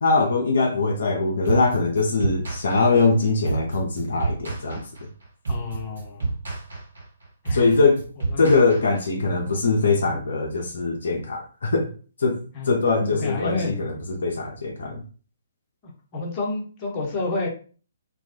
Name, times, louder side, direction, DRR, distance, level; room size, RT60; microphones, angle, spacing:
voice 1, 0.0-4.8 7.5-8.1 8.4-11.9 12.2-12.4 12.6-15.0, left 3 dB, 60° left, 1 dB, 0.4 m, -22 dB
sound 1, 1.4-9.3, right 3 dB, 65° right, 1.0 m, -30 dB
voice 2, 5.5-6.3 7.4-7.7 8.3-8.6 12.5-12.7 13.1-13.7 15.8-17.5, left 3 dB, 25° left, -2 dB, 0.7 m, -30 dB
2.2 x 2.1 x 2.6 m, 0.40 s
figure-of-eight pair, 130°, 0 cm